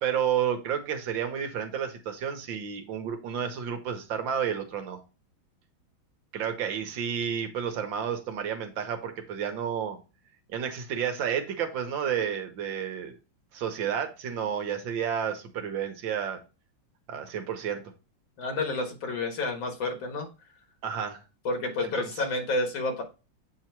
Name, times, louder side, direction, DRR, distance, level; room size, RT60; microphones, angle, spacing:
voice 1, 0.0-5.0 6.3-10.0 10.5-13.2 13.5-16.4 17.1-17.8 20.8-21.2 22.0-22.1, right 8 dB, 75° right, 6 dB, 1.7 m, -31 dB
voice 2, 18.4-20.3 21.5-23.0, left 2 dB, 75° left, 3 dB, 2.2 m, -30 dB
7.9 x 2.9 x 4.5 m, 0.31 s
omnidirectional pair, 2.2 m